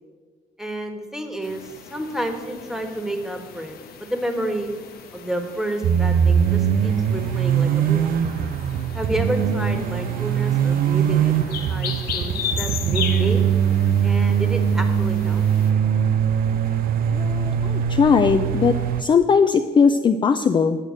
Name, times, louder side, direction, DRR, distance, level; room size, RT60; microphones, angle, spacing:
voice 1, 0.6-1.6 1.9-4.7 5.1-8.1 8.9-13.4 14.0-15.4, right 1 dB, 5° right, 5 dB, 1.3 m, -30 dB
sound 1, 1.4-15.7, left 8 dB, 90° left, 1.0 m, -36 dB
sound 2, 5.8-19.0, right 8 dB, 75° right, 0.6 m, -21 dB
voice 2, 17.1-20.8, left 5 dB, 30° left, 6 dB, 0.4 m, -19 dB
8.9 x 6.6 x 6.2 m, 1.4 s
cardioid pair, 105°, 15 cm